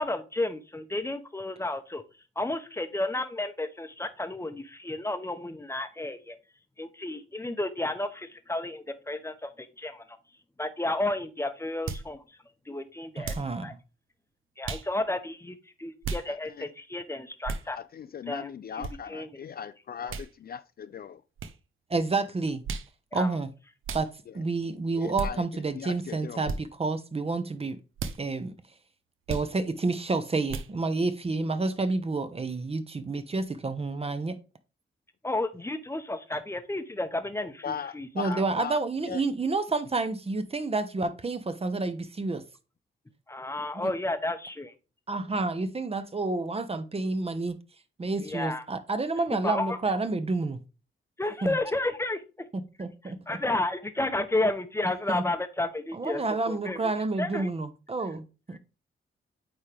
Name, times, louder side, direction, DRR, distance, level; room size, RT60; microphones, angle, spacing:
voice 1, 0.0-2.0 2.4-6.4 6.8-10.0 10.6-12.2 12.7-13.3 13.6-13.7 14.6-17.8 18.3-18.5 18.7-19.4 23.1-23.3 35.2-38.4 43.3-44.7 48.2-48.6 49.3-49.8 51.2-52.2 53.3-56.9 57.2-57.5, left 2 dB, 15° left, 0.8 m, -32 dB
sound 1, 11.9-12.1 13.2-13.5 14.6-14.9 16.0-16.3 17.4-17.7 18.8-18.9 20.1-20.3 21.4-21.5 22.6-22.9 23.8-24.1 25.1-25.3 26.4-26.6 28.0-28.2 29.3-29.5 30.5-30.7, right 4 dB, 85° right, 0.7 m, -34 dB
voice 2, 13.2-13.8 21.9-22.6 23.1-23.5 23.9-24.1 24.3-27.8 28.2-28.5 29.3-34.4 38.1-42.4 43.7-43.9 45.1-47.5 48.0-50.6 51.4-51.6 52.8-53.4 55.1-55.2 55.9-58.6, right 3 dB, 30° right, 0.8 m, -29 dB
voice 3, 16.3-16.6 17.7-21.2 24.3-24.4 25.0-25.5 25.8-26.5 37.6-38.8 39.1-39.2, left 7 dB, 50° left, 0.4 m, -38 dB
8.9 x 3.7 x 3.4 m
wide cardioid pair, 105°, 20 cm